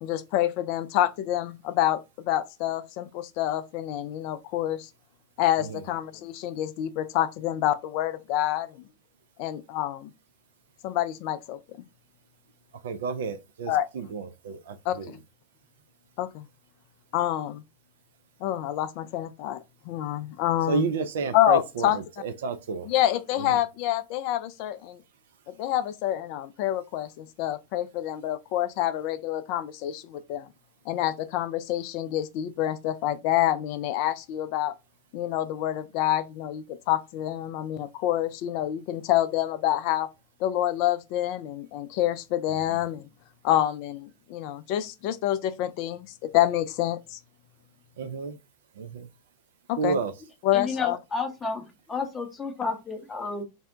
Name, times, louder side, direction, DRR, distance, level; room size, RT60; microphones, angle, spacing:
voice 1, 0.0-4.9 5.4-8.9 9.4-10.1 10.8-11.6 13.7-13.9 14.9-15.2 16.2-16.5 17.1-17.6 18.4-20.9 21.3-22.0 22.8-25.0 25.6-30.5 30.9-34.7 35.1-40.1 40.4-43.1 43.4-47.2 49.7-50.0 50.4-51.0, left 13 dB, 45° left, 0.3 m, -27 dB
voice 2, 12.8-15.2 20.7-22.9 23.5-23.6 42.7-42.8 48.0-48.4 48.8-49.1 49.8-50.1, right 4 dB, 60° right, 0.3 m, -31 dB
voice 3, 50.5-53.4, left 4 dB, 15° left, 0.6 m, -31 dB
2.6 x 2.1 x 3.5 m
figure-of-eight pair, 90°, 0 cm